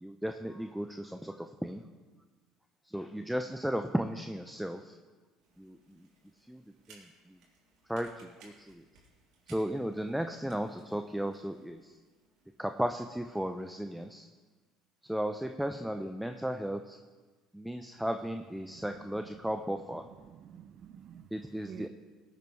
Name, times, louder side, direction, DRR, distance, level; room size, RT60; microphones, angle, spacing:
voice 1, 0.0-1.8 2.9-5.0 5.6-6.1 6.5-6.6 6.9-7.4 7.9-8.8 9.5-11.9 12.6-14.3 15.0-17.0 17.5-20.1 21.3-21.9, equal, 5° right, 7 dB, 0.6 m, -35 dB
sound 1, 5.4-13.5, right 3 dB, 65° right, 3.5 m, -63 dB
voice 2, 18.7-19.1 19.7-21.3 21.6-21.9, right 8 dB, 50° right, 16 dB, 0.5 m, -50 dB
18.5 x 9.2 x 3.3 m, 1.4 s
hypercardioid pair, 70°, 0 cm